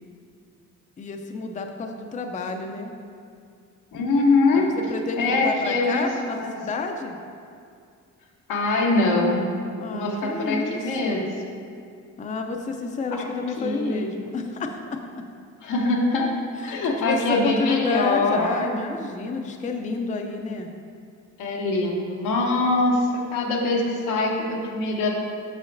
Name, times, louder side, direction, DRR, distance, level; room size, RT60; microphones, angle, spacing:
voice 1, 1.0-2.9 4.5-7.2 9.8-11.3 12.2-15.0 16.6-20.7, left 3 dB, 25° left, 4 dB, 0.5 m, -30 dB
voice 2, 3.9-4.7 5.2-6.0 6.3-6.5 8.5-9.4 9.9-11.3 13.6-14.0 15.6-16.3 16.6-18.8 21.4-25.1, left 2 dB, 85° left, -1 dB, 1.0 m, -23 dB
8.0 x 5.7 x 2.6 m, 2.2 s
cardioid pair, 90°, 30 cm